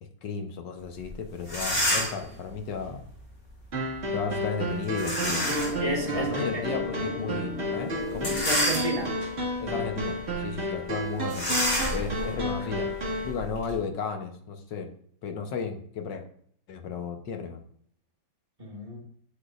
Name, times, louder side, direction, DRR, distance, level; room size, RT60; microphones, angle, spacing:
voice 1, 0.0-3.0 4.1-5.7 6.1-8.3 9.6-11.6 11.9-12.9 13.2-14.9 15.2-16.2 16.7-17.6, left 5 dB, 85° left, 5 dB, 1.7 m, -34 dB
sound 1, 1.1-1.2 1.4-2.3 5.0-5.8 6.4-6.5 8.1-9.2 9.8-10.0 10.3-10.4 11.3-13.7, equal, 65° left, 4.4 m, -28 dB
sound 2, 3.7-13.3, equal, 40° right, 2.1 m, -32 dB
sound 3, 5.2-10.5, left 3 dB, 45° left, 0.9 m, -38 dB
voice 2, 5.8-6.6 8.3-9.1 18.6-19.0, equal, 20° right, -2 dB, 1.8 m, -32 dB
10.5 x 6.5 x 2.5 m, 0.62 s
omnidirectional pair, 1.9 m